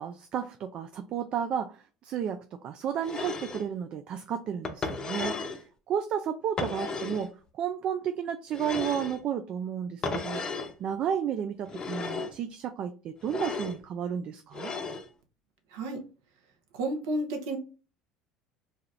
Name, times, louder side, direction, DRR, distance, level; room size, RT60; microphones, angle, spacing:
voice 1, 0.0-5.4 5.9-10.4 10.8-14.7, right 8 dB, 50° right, 8 dB, 0.3 m, -32 dB
sound 1, 3.0-3.7 4.6-5.6 6.6-7.3 8.5-9.2 10.0-10.7 11.7-12.4 13.2-13.8 14.5-15.1, left 4 dB, 35° left, 0.6 m, -34 dB
voice 2, 15.7-16.0 16.7-17.6, right 1 dB, 75° right, 3 dB, 0.8 m, -31 dB
2.7 x 2.4 x 3.2 m, 0.34 s
hypercardioid pair, 75°, 2 cm